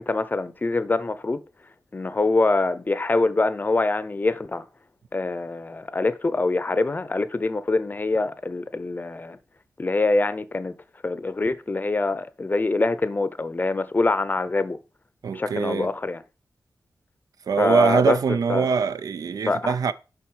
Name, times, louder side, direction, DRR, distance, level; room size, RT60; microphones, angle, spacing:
voice 1, 0.0-1.4 1.9-4.6 5.1-9.4 9.8-10.7 11.0-14.8 15.3-16.2 17.6-18.2 18.5-18.7 19.5-19.8, left 3 dB, 30° left, 0.6 m, -24 dB
voice 2, 15.2-15.9 17.5-19.9, right 6 dB, 75° right, 0.4 m, -23 dB
7.2 x 5.4 x 4.6 m
wide cardioid pair, 115°, 6 cm